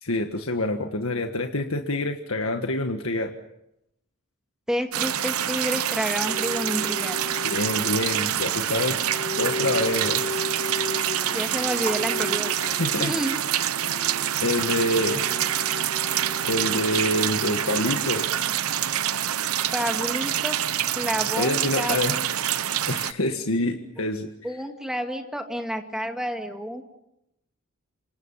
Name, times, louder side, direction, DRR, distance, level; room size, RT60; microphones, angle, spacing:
voice 1, 0.0-3.3 7.4-9.0 9.3-10.3 12.5-13.1 14.4-15.2 16.4-18.3 21.4-22.2 22.9-24.3, left 1 dB, 75° left, 4 dB, 1.6 m, -26 dB
voice 2, 4.7-7.2 11.3-12.5 13.0-13.4 19.7-20.6 20.9-22.3 24.4-26.8, equal, 5° right, 4 dB, 2.2 m, -29 dB
sound 1, 4.9-23.1, right 10 dB, 90° right, 0.9 m, -26 dB
sound 2, 6.3-8.2 9.1-17.2, left 3 dB, 30° left, 0.9 m, -36 dB
29.0 x 26.0 x 5.7 m, 0.83 s
head